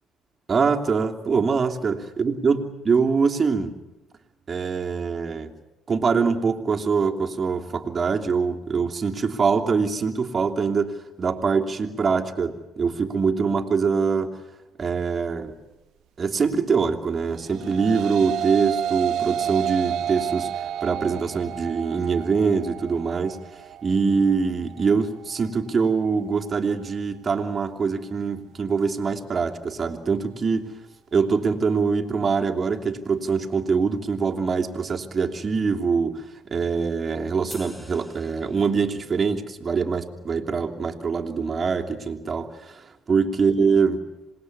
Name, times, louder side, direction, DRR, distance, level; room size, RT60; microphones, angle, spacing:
voice 1, 0.5-3.8 4.5-5.5 5.9-14.4 14.8-15.5 16.2-30.7 31.1-44.0, right 5 dB, 40° right, 3 dB, 3.0 m, -24 dB
sound 1, 17.3-26.5, right 10 dB, 70° right, 1.0 m, -30 dB
sound 2, 37.5-39.1, equal, 5° left, 3.4 m, -46 dB
27.0 x 20.0 x 9.7 m, 1.1 s
supercardioid pair, 70°, 0 cm